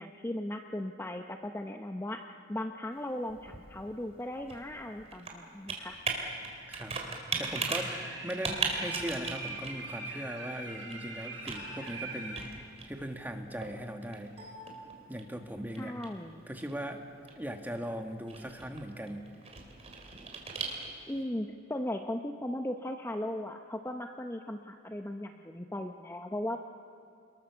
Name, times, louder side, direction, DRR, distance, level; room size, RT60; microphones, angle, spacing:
voice 1, 0.0-6.0 15.8-16.4 21.1-26.6, left 1 dB, 15° left, 4 dB, 0.8 m, -37 dB
Computer keyboard, 2.9-21.2, right 4 dB, 35° right, 3.4 m, -40 dB
voice 2, 6.7-14.4 15.1-16.0 16.5-17.1 17.3-19.3, equal, 10° right, 4 dB, 1.7 m, -39 dB
sound 1, 7.4-12.5, right 2 dB, 80° right, 5.4 m, -42 dB
28.5 x 21.5 x 7.0 m, 2.3 s
head